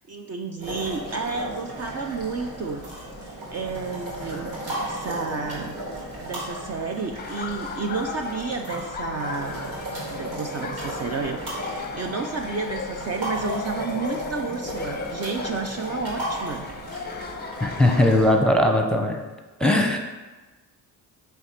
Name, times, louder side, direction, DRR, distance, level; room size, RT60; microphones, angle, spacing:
voice 1, 0.1-2.8 3.2-5.8 6.2-9.6 10.1-16.7, right 4 dB, 40° right, 4 dB, 0.6 m, -31 dB
sound 1, 0.6-18.3, right 1 dB, 90° right, 2.5 m, -35 dB
Laughter, 7.2-18.1, left 5 dB, 25° left, 0.6 m, -36 dB
voice 2, 17.6-19.2 19.6-20.0, left 1 dB, ahead, 3 dB, 0.9 m, -19 dB
7.8 x 3.4 x 5.8 m, 1.2 s
cardioid pair, 85°, 40 cm